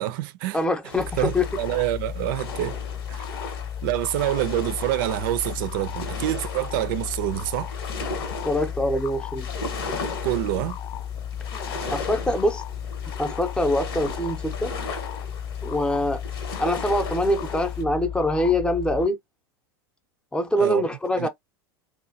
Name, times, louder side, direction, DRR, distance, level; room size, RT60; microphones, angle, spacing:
voice 1, 0.0-0.6 1.2-2.7 3.1-3.2 3.8-7.7 10.2-10.8 20.5-20.9 21.2-21.3, right 14 dB, 65° right, 0.5 m, -26 dB
voice 2, 0.5-1.4 8.4-9.5 11.9-12.6 13.2-14.7 15.6-16.2 16.6-19.2 20.3-21.3, left 1 dB, 5° left, 0.7 m, -24 dB
sound 1, 0.9-17.8, left 3 dB, 80° left, 1.2 m, -37 dB
sound 2, 1.0-19.1, left 9 dB, 35° left, 0.3 m, -34 dB
2.8 x 2.3 x 2.7 m
hypercardioid pair, 105°, 12 cm